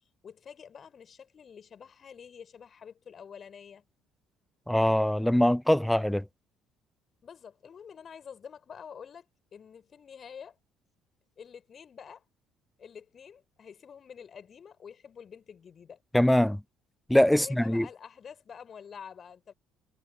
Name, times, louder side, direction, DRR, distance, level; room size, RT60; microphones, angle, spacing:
voice 1, 0.2-3.8 7.2-9.3 9.5-10.6 11.4-12.2 12.8-16.0 17.3-19.5, left 7 dB, 40° left, 6.4 m, -48 dB
voice 2, 4.7-6.2 16.1-16.6 17.1-17.9, left 1 dB, 5° left, 0.3 m, -23 dB
figure-of-eight pair, 50°, 0 cm